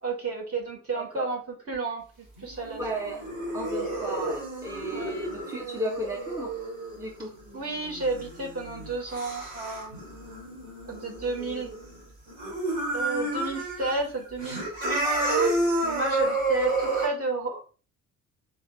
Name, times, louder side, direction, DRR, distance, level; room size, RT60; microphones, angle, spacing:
voice 1, 0.0-2.8 4.9-5.1 7.5-10.2 10.9-11.7 12.9-15.0 15.8-17.6, right 3 dB, 35° right, -1 dB, 1.8 m, -32 dB
voice 2, 0.9-1.3 2.8-3.2 3.5-6.6 7.0-7.4, right 1 dB, 10° right, 0 dB, 0.8 m, -35 dB
sound 1, 2.4-12.0 12.3-13.9 14.3-17.1, right 2 dB, 65° right, 2.6 m, -30 dB
4.6 x 3.2 x 3.5 m, 0.36 s
figure-of-eight pair, 45°, 40 cm